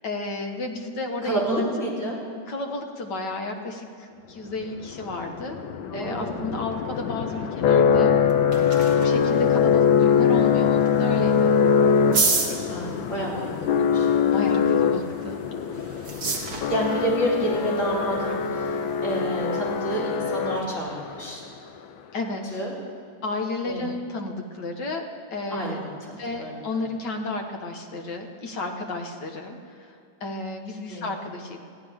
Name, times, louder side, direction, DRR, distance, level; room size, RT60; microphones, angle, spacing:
voice 1, 0.0-1.7 2.5-5.6 5.9-8.1 9.0-11.5 14.2-15.4 22.1-22.6 23.2-25.8 26.2-29.9 30.2-31.6, left 2 dB, 60° left, 3 dB, 2.0 m, -32 dB
voice 2, 1.2-2.2 5.9-6.4 12.5-14.1 16.0-16.4 16.7-21.4 22.5-22.7 23.6-23.9 25.5-26.9 30.9-31.1, right 1 dB, 35° left, -6 dB, 4.3 m, -30 dB
sound 1, 4.8-21.0, left 7 dB, 80° left, 1.5 m, -23 dB
sound 2, 8.1-20.6, right 3 dB, 60° right, 2.4 m, -34 dB
21.0 x 15.0 x 3.6 m, 2.4 s
omnidirectional pair, 2.1 m